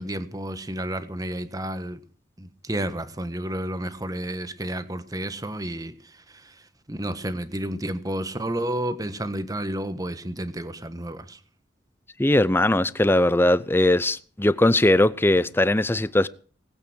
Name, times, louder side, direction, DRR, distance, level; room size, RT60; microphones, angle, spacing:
voice 1, 0.0-2.0 2.4-6.5 6.9-11.4, right 1 dB, 20° right, 1.3 m, -31 dB
voice 2, 12.2-16.3, left 1 dB, 10° left, 0.6 m, -20 dB
19.5 x 8.8 x 6.2 m
head